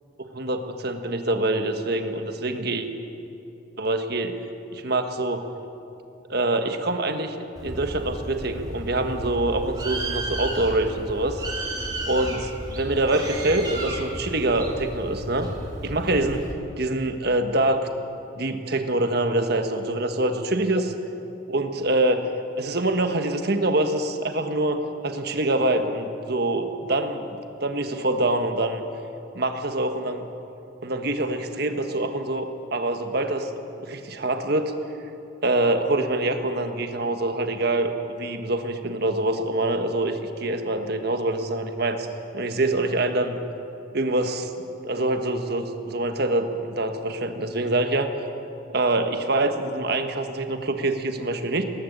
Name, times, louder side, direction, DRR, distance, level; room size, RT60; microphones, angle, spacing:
voice 1, 0.3-2.9 3.8-4.3 4.7-5.4 6.3-11.4 12.1-15.5 15.8-16.5 16.8-17.9 18.4-20.9 21.5-22.3 22.6-28.8 29.3-30.3 30.8-33.5 33.8-34.7 35.4-42.1 42.3-43.4 43.9-44.5 44.8-48.1 48.7-51.6, right 2 dB, 50° right, 6 dB, 1.5 m, -25 dB
Bird, 7.6-16.5, right 1 dB, 20° right, 3.2 m, -33 dB
20.5 x 17.0 x 8.2 m, 2.8 s
head